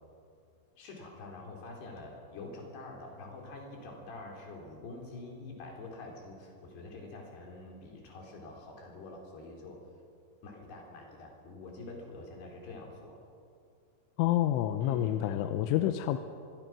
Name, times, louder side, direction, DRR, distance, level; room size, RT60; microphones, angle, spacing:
voice 1, 0.8-9.8 10.4-13.2 14.8-15.9, left 2 dB, 60° left, 0 dB, 5.7 m, -46 dB
voice 2, 14.2-16.2, left 12 dB, 90° left, 8 dB, 3.2 m, -28 dB
25.0 x 22.0 x 6.2 m, 2.4 s
omnidirectional pair, 5.4 m